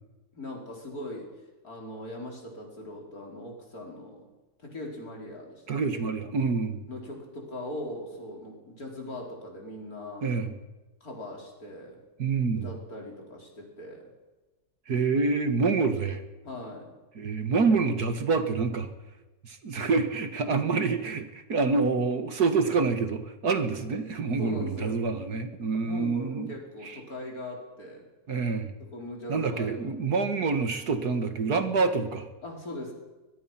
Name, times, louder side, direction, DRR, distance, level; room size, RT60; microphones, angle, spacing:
voice 1, 0.3-1.3 1.6-4.3 4.6-6.0 6.9-10.3 11.0-12.0 12.5-14.1 16.4-16.9 24.4-25.1 25.8-28.1 28.8-30.1 32.4-32.9, left 1 dB, 55° left, 1 dB, 4.7 m, -40 dB
voice 2, 5.7-6.8 10.2-10.5 12.2-12.7 14.9-16.2 17.2-18.9 19.4-26.5 26.8-27.0 28.3-28.7 29.3-32.3, right 4 dB, 60° right, 8 dB, 2.0 m, -27 dB
22.0 x 21.5 x 5.8 m, 1.1 s
omnidirectional pair, 1.9 m